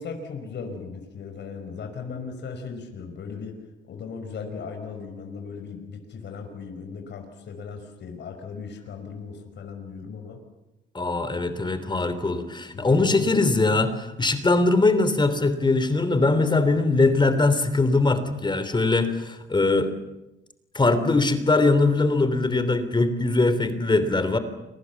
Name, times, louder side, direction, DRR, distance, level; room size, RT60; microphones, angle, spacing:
voice 1, 0.0-3.6 3.8-10.4 12.7-13.3, left 5 dB, 60° left, 4 dB, 5.1 m, -37 dB
voice 2, 10.9-19.9 20.7-24.4, left 3 dB, 25° left, 11 dB, 3.2 m, -21 dB
29.5 x 24.0 x 7.2 m, 0.97 s
cardioid pair, 90°, 20 cm